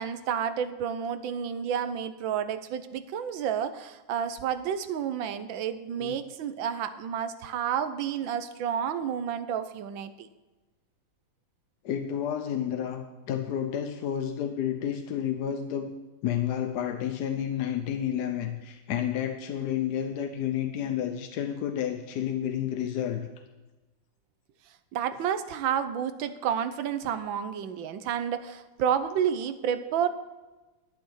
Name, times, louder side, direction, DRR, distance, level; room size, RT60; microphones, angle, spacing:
voice 1, 0.0-10.3 24.9-30.1, right 8 dB, 90° right, 11 dB, 1.5 m, -30 dB
voice 2, 11.8-15.9 16.2-23.3, left 9 dB, 65° left, 6 dB, 1.2 m, -30 dB
12.0 x 8.6 x 6.4 m, 1.2 s
omnidirectional pair, 2.0 m